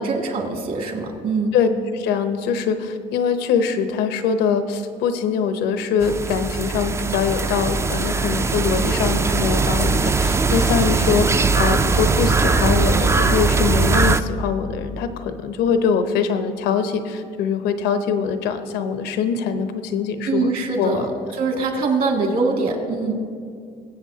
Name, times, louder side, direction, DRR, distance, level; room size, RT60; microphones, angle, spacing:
voice 1, 0.0-1.6 20.3-21.1 21.4-23.1, right 3 dB, 55° right, 1 dB, 2.2 m, -23 dB
voice 2, 1.5-20.5 20.8-21.1, left 6 dB, 85° left, 9 dB, 0.8 m, -23 dB
sound 1, 6.0-14.2, right 4 dB, 15° right, 0.3 m, -20 dB
21.0 x 8.0 x 2.8 m, 2.3 s
cardioid pair, 110°, 17 cm